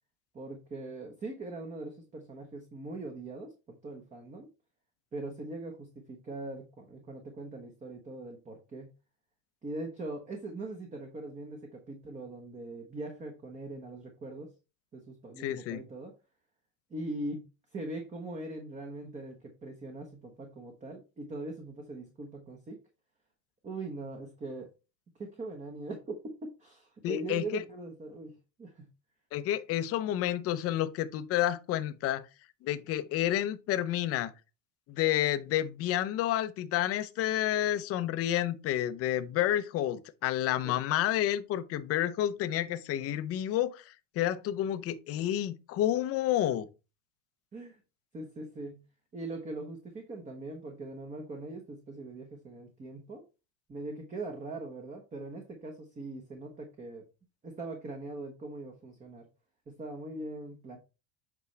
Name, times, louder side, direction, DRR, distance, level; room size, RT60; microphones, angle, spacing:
voice 1, 0.3-4.5 5.1-8.9 9.6-14.5 14.9-16.1 16.9-17.5 17.7-22.8 23.6-24.7 25.2-26.3 26.6-28.9 40.6-40.7 47.5-47.8 48.1-48.8 49.1-53.2 53.7-57.0 57.4-59.2 59.7-60.8, right 2 dB, 20° right, 1.2 m, -41 dB
voice 2, 15.4-15.8 27.0-27.6 29.3-32.3 32.6-34.3 34.9-46.7, left 12 dB, 40° left, 0.7 m, -30 dB
8.3 x 5.3 x 3.3 m
supercardioid pair, 145°, 38 cm